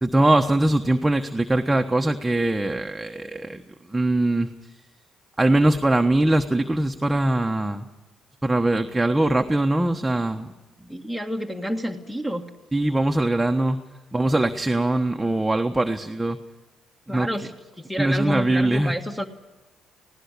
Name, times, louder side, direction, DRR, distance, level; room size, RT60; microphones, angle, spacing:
voice 1, 0.0-3.6 3.9-4.5 5.4-7.9 8.4-10.5 12.7-13.8 14.1-16.4 17.1-17.3 18.0-18.9, right 1 dB, 10° right, 5 dB, 1.2 m, -22 dB
voice 2, 10.9-12.4 17.1-17.5 17.8-19.2, equal, 10° left, 3 dB, 1.8 m, -29 dB
19.5 x 16.5 x 8.4 m, 1.1 s
hypercardioid pair, 55°, 0 cm